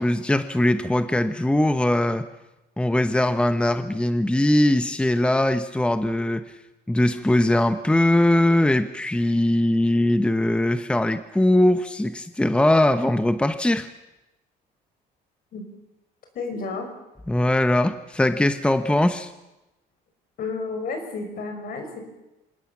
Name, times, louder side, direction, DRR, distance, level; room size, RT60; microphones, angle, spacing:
voice 1, 0.0-2.3 2.8-6.4 6.9-13.9 17.3-19.3, left 1 dB, 5° left, 10 dB, 0.9 m, -21 dB
voice 2, 16.3-16.9 20.4-22.0, left 4 dB, 60° left, 5 dB, 6.3 m, -31 dB
26.5 x 19.5 x 7.3 m, 0.98 s
cardioid pair, 110°, 17 cm